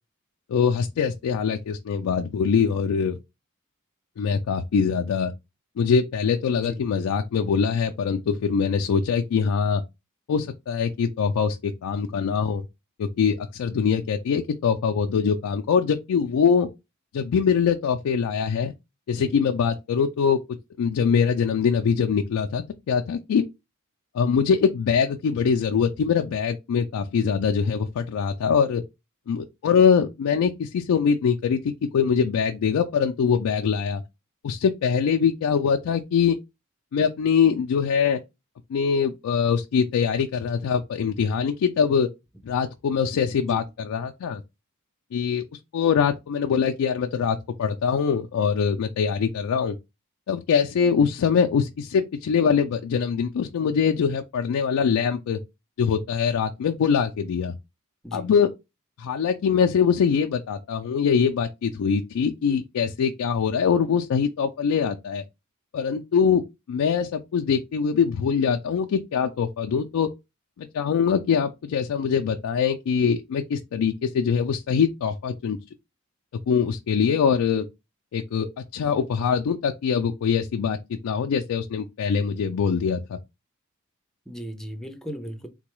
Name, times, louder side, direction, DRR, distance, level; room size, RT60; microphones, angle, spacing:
voice 1, 0.5-3.2 4.2-5.3 5.8-9.8 10.3-12.6 13.0-16.7 17.1-18.7 19.1-20.4 20.8-23.5 24.1-28.8 29.3-34.0 34.4-36.4 36.9-38.2 38.7-42.1 42.4-44.4 45.1-45.4 45.7-49.8 50.3-55.4 55.8-57.5 58.1-58.5 59.0-65.2 65.7-66.4 66.7-70.1 70.6-75.6 76.5-77.7 78.1-83.2, left 6 dB, 85° left, 0.3 m, -23 dB
voice 2, 84.3-85.5, equal, ahead, 0.5 m, -36 dB
3.8 x 2.2 x 3.0 m
head